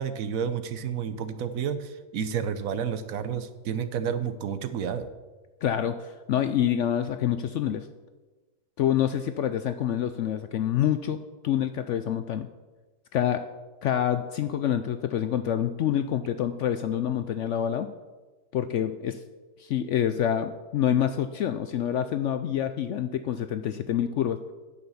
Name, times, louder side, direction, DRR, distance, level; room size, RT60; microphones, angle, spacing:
voice 1, 0.0-5.1, right 7 dB, 70° right, 12 dB, 1.0 m, -30 dB
voice 2, 5.6-7.9 8.8-11.2 11.4-12.5 13.1-13.4 13.8-17.9 18.5-19.2 19.6-24.4, left 10 dB, 70° left, 10 dB, 0.7 m, -27 dB
9.7 x 6.8 x 7.0 m, 1.2 s
omnidirectional pair, 1.6 m